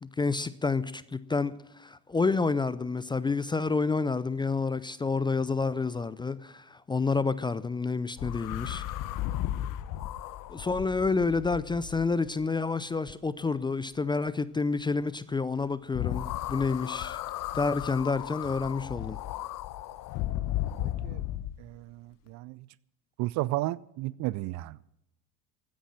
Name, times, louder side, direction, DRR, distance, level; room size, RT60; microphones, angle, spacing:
voice 1, 0.0-8.8 10.5-17.2 17.5-19.2, left 4 dB, 10° left, 0.5 m, -29 dB
sound 1, 8.2-12.4 15.9-21.6, left 14 dB, 45° left, 1.0 m, -35 dB
voice 2, 20.8-21.2 21.6-22.7 23.2-24.8, right 18 dB, 40° right, 0.5 m, -33 dB
16.0 x 10.0 x 7.7 m
hypercardioid pair, 80°, 47 cm